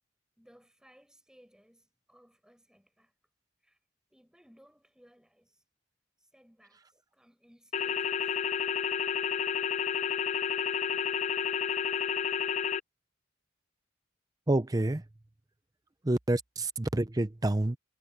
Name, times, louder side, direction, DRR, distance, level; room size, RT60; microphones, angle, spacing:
voice 1, 0.4-3.1 3.6-3.8 4.1-5.6 6.3-6.8 7.1-8.4 11.0-11.1, equal, 5° right, 4.8 m, -61 dB
sound 1, 7.7-12.8, left 7 dB, 35° left, 0.4 m, -30 dB
voice 2, 14.5-15.0 16.0-17.8, right 1 dB, 20° right, 0.6 m, -28 dB
head